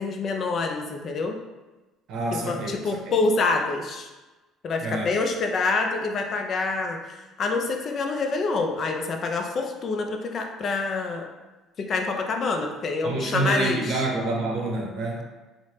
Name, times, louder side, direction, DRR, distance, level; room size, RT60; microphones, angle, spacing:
voice 1, 0.0-1.4 2.3-4.1 4.6-11.3 11.8-14.0, left 3 dB, 45° left, 4 dB, 0.3 m, -27 dB
voice 2, 2.1-3.1 4.8-5.1 13.0-15.2, right 2 dB, 70° right, -1 dB, 0.7 m, -27 dB
3.1 x 2.0 x 2.8 m, 1.2 s
cardioid pair, 105°, 0 cm